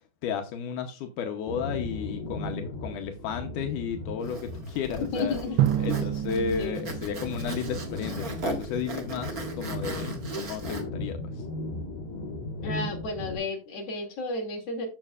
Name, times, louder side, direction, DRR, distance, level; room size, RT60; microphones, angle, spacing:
voice 1, 0.2-5.4 5.8-11.4, left 6 dB, 75° left, 1.9 m, -33 dB
sound 1, 1.5-13.4, left 1 dB, 60° left, 4.1 m, -37 dB
Zipper (clothing), 4.2-10.8, right 2 dB, 55° right, 0.9 m, -38 dB
voice 2, 5.1-5.6 5.9-6.0 6.6-6.9 12.6-14.9, left 3 dB, 40° left, 3.0 m, -32 dB
Drum, 5.6-8.2, right 12 dB, 85° right, 2.7 m, -29 dB
13.0 x 6.8 x 2.4 m
omnidirectional pair, 4.7 m